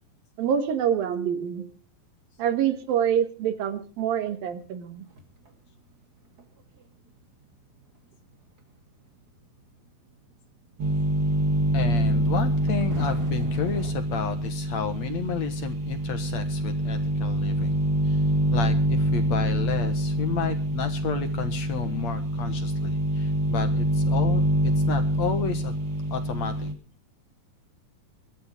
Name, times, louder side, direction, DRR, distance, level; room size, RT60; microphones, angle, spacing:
voice 1, 0.4-1.7 2.4-5.1, right 9 dB, 75° right, 9 dB, 3.2 m, -26 dB
sound 1, 4.0-13.9, right 1 dB, 30° right, 2.5 m, -46 dB
sound 2, 10.8-26.7, right 1 dB, 45° right, 2.0 m, -25 dB
voice 2, 11.7-17.8 18.0-18.2 18.5-25.7 26.1-26.7, left 7 dB, 60° left, 8 dB, 2.3 m, -32 dB
23.0 x 12.5 x 3.7 m, 0.35 s
omnidirectional pair, 4.2 m